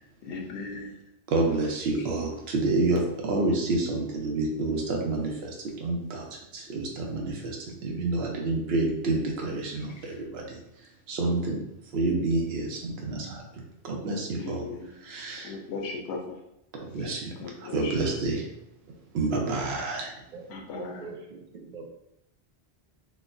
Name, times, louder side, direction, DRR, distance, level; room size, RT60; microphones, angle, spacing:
voice 1, 0.3-0.9 14.4-14.9 15.4-16.2 17.4-17.9 20.5-21.0, left 4 dB, 80° left, 2 dB, 0.9 m, -37 dB
voice 2, 1.3-11.6 11.9-14.7 15.0-15.5 16.8-17.3 17.6-18.5 19.1-20.2, right 2 dB, 70° right, 0 dB, 0.9 m, -29 dB
voice 3, 20.3-21.9, right 4 dB, 55° right, 2 dB, 0.6 m, -43 dB
4.0 x 2.1 x 2.5 m, 0.85 s
omnidirectional pair, 1.1 m